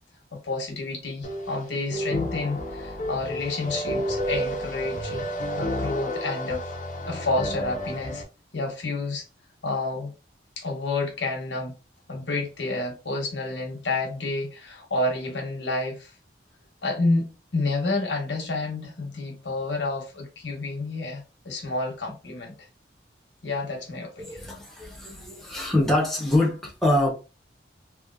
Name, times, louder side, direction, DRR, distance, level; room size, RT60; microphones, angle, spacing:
voice 1, 0.3-5.3 5.6-6.7 7.1-8.2 8.5-9.3 9.6-10.1 10.6-11.8 12.1-16.1 16.8-22.6 23.4-24.4, left 2 dB, 80° left, 1.1 m, -29 dB
sound 1, 1.2-8.2, equal, 45° left, 0.7 m, -31 dB
voice 2, 24.2-27.1, left 1 dB, ahead, 0.9 m, -24 dB
3.1 x 2.8 x 2.6 m
head